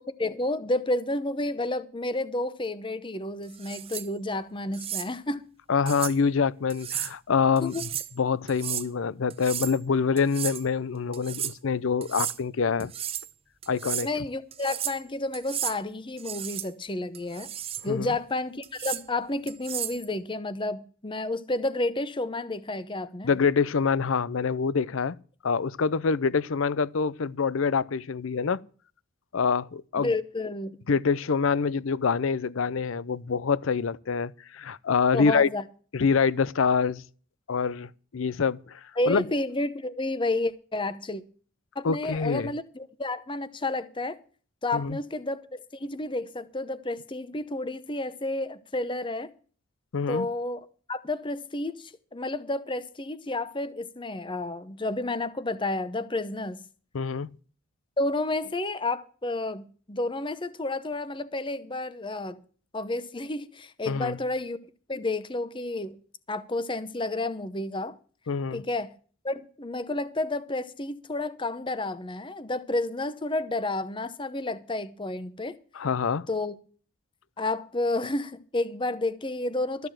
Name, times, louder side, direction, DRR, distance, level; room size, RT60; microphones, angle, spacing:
voice 1, 0.2-5.4 7.6-7.8 14.0-17.5 17.8-23.3 30.0-30.8 35.1-35.6 39.0-41.2 41.8-44.2 44.6-49.3 50.1-50.6 50.9-56.6 58.0-62.4 62.7-64.6 64.9-66.0 66.3-68.0 68.5-68.9 69.2-75.6 76.3-76.6 77.4-79.9, left 2 dB, 25° left, 0.8 m, -31 dB
sound 1, 3.5-4.1 4.7-5.1 5.9-6.2 6.7-7.1 7.6-8.1 8.5-8.9 9.3-9.8 10.2-10.6 11.1-11.5 12.0-12.4 12.8-13.3 13.6-14.1 14.5-15.0 15.3-15.8 16.2-16.7 17.1-17.9 18.6-19.0 19.5-20.0, right 11 dB, 30° right, 0.5 m, -33 dB
voice 2, 5.7-7.9 8.2-12.9 13.7-14.1 17.8-18.1 23.2-25.2 25.4-28.6 29.3-30.1 30.9-35.5 35.9-37.0 37.5-39.3 41.8-42.5 44.7-45.0 49.9-50.3 56.9-57.3 63.9-64.2 68.3-68.6 75.7-76.3, left 5 dB, 75° left, 0.5 m, -26 dB
13.0 x 6.8 x 7.5 m
head